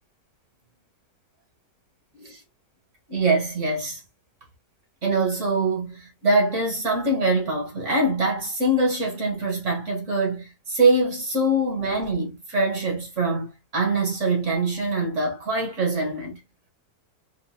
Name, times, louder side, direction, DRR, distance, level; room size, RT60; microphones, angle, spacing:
voice 1, 3.1-4.0 5.0-16.4, right 2 dB, 45° right, 1.6 m, -24 dB
4.7 x 2.5 x 2.7 m
omnidirectional pair, 1.9 m